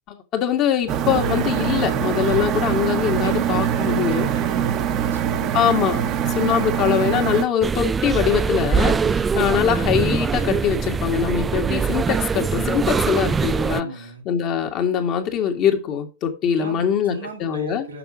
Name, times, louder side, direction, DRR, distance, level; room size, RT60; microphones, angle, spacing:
voice 1, 0.1-4.3 5.5-13.9 14.2-17.1 17.4-17.9, left 8 dB, 40° left, 1.7 m, -22 dB
sound 1, 0.9-7.4, right 9 dB, 40° right, 0.9 m, -23 dB
voice 2, 3.2-5.5 5.9-6.3 9.0-9.2 13.8-14.2 16.5-18.0, right 2 dB, 85° right, 2.5 m, -36 dB
sound 2, 7.6-13.8, right 5 dB, 20° right, 0.3 m, -22 dB
6.9 x 5.6 x 5.0 m
figure-of-eight pair, 95°, 0 cm